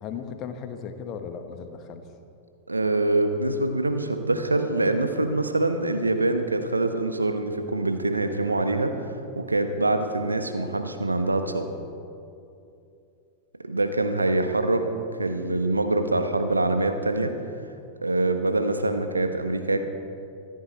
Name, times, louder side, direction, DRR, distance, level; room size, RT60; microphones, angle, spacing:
voice 1, 0.0-2.0, left 6 dB, 35° left, 7 dB, 1.3 m, -36 dB
voice 2, 2.7-8.9 9.4-11.7 13.6-14.9 15.2-17.3 18.0-19.9, right 2 dB, 80° right, 7 dB, 1.1 m, -24 dB
24.0 x 10.5 x 4.3 m, 2.6 s
figure-of-eight pair, 90°, 0 cm